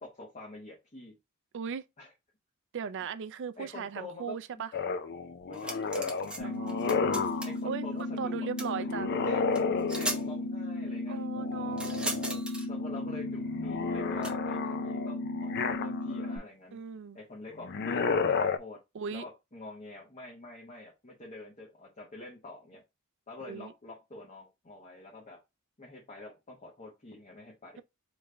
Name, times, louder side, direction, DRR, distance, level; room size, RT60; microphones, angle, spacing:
voice 1, 0.0-1.1 2.0-2.1 3.6-4.3 5.5-6.6 7.4-8.9 9.2-9.4 10.0-11.3 12.7-16.8 17.1-18.8 19.1-22.8 23.3-25.4 25.8-27.8, left 2 dB, 35° left, 1.1 m, -46 dB
voice 2, 1.5-1.9 2.7-4.7 6.4-7.2 7.6-7.9 8.2-9.2 11.1-12.5 16.7-17.2 18.9-19.2 23.4-23.7, right 6 dB, 60° right, 0.4 m, -38 dB
sound 1, 4.7-7.5 8.9-10.4 11.4-12.4 12.8-16.3 17.6-18.6, left 5 dB, 50° left, 0.4 m, -32 dB
sound 2, 5.5-6.4 6.7-7.6 8.6-8.7 9.6-9.7 9.9-10.2 11.8-12.7 14.2-14.3, right 1 dB, 5° right, 0.7 m, -36 dB
sound 3, 6.4-16.4, left 2 dB, 85° left, 0.9 m, -35 dB
3.4 x 3.1 x 3.8 m
head